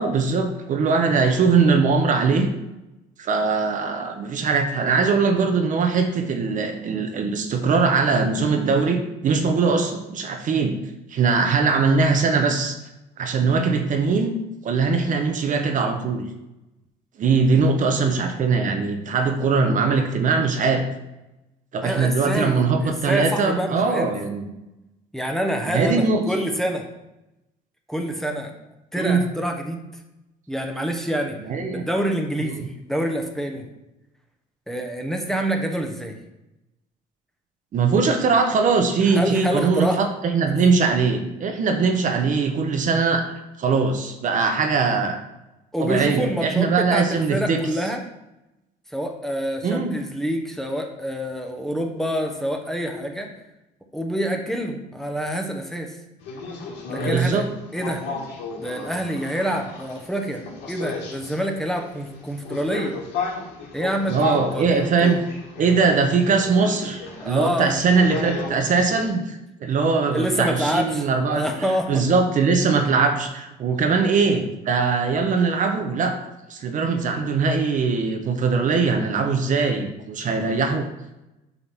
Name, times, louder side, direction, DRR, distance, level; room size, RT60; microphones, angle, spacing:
voice 1, 0.0-2.5 3.2-10.7 11.1-12.8 13.2-14.3 14.6-16.3 17.2-20.8 21.7-24.5 25.7-26.2 29.0-29.3 31.4-31.8 32.4-32.7 37.7-43.3 43.6-45.2 45.8-47.6 49.6-49.9 57.0-57.4 64.1-65.2 65.6-71.5 71.9-76.2 76.5-80.9, right 4 dB, 50° right, 5 dB, 1.0 m, -21 dB
voice 2, 21.8-24.1 25.1-26.8 27.9-28.5 28.9-29.8 30.5-31.4 31.7-33.7 34.7-36.2 39.1-40.0 40.4-40.5 45.7-48.0 48.9-53.3 53.9-56.0 56.9-57.4 57.7-58.0 58.6-60.4 60.7-62.9 63.7-65.1 67.2-67.7 70.1-71.0 71.3-72.0, equal, ahead, 3 dB, 1.1 m, -26 dB
sound 1, 56.2-69.1, left 4 dB, 85° left, 2.3 m, -34 dB
7.9 x 3.8 x 6.0 m, 0.93 s
cardioid pair, 110°, 17 cm